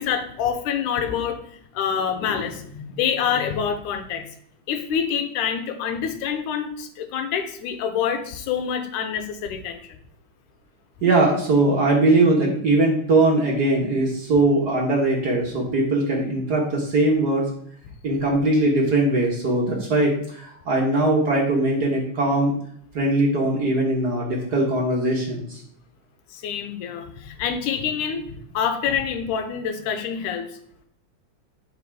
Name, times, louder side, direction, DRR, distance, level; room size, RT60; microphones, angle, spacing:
voice 1, 0.0-4.3 4.7-9.8 26.3-30.5, left 7 dB, 80° left, 7 dB, 2.2 m, -26 dB
voice 2, 11.0-17.4 18.0-22.5 22.9-25.6, right 2 dB, 65° right, -1 dB, 0.9 m, -20 dB
8.6 x 4.8 x 4.7 m, 0.64 s
omnidirectional pair, 3.7 m